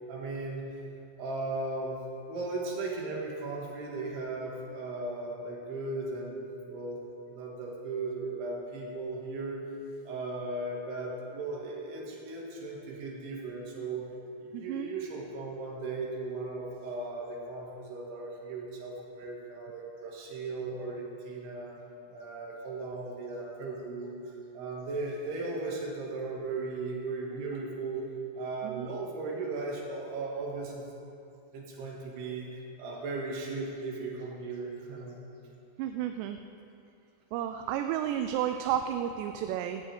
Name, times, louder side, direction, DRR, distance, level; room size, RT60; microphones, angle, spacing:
voice 1, 0.1-0.6 1.2-2.0 2.3-6.4 6.7-7.0 7.3-9.7 10.1-14.0 14.4-21.8 22.1-28.1 28.3-30.9 31.5-35.1, right 3 dB, 70° right, -3 dB, 4.1 m, -37 dB
voice 2, 14.5-14.9 28.6-28.9 35.8-36.4 37.3-39.8, right 10 dB, 85° right, 6 dB, 2.7 m, -32 dB
17.0 x 14.5 x 3.6 m, 2.6 s
omnidirectional pair, 5.0 m